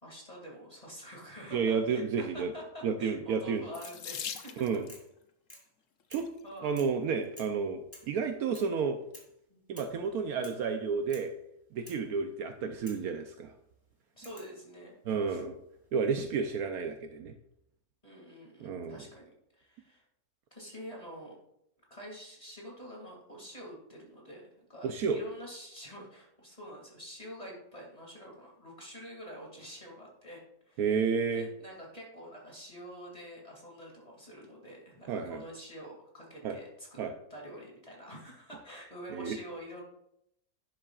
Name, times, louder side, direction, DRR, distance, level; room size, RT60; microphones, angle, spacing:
voice 1, 0.0-4.5 6.4-6.7 9.5-9.6 11.9-12.1 14.1-14.9 15.3-15.4 18.0-20.0 20.5-21.4 21.9-30.4 30.7-30.9 31.3-37.0 37.3-39.8, equal, 25° left, -2 dB, 2.5 m, -47 dB
voice 2, 1.5-2.5 2.8-3.7 4.6-4.9 6.1-6.3 6.6-9.0 9.7-11.3 11.7-13.5 15.1-15.6 15.9-17.3 18.6-19.0 24.8-25.2 30.8-31.5 35.1-35.4 36.4-36.6 37.0-37.1 39.1-39.4, right 5 dB, 75° right, 5 dB, 1.2 m, -31 dB
Water tap faucet / Sink (filling or washing), 3.7-5.0 6.0-6.4 7.1-7.2 7.5-7.7, left 8 dB, 60° left, 1.0 m, -41 dB
sound 1, 3.8-4.1 4.3-4.5 4.9-5.1 5.5-5.7 6.1-6.3 6.8-7.0 7.4-7.6 7.9-8.1 8.5-8.7 9.1-9.3 9.8-10.0 10.4-10.6 11.1-11.3 11.9-12.1 12.9-13.1 14.2-14.6 15.7-16.2, equal, 10° left, 2.6 m, -52 dB
11.5 x 10.0 x 2.4 m, 0.77 s
omnidirectional pair, 1.6 m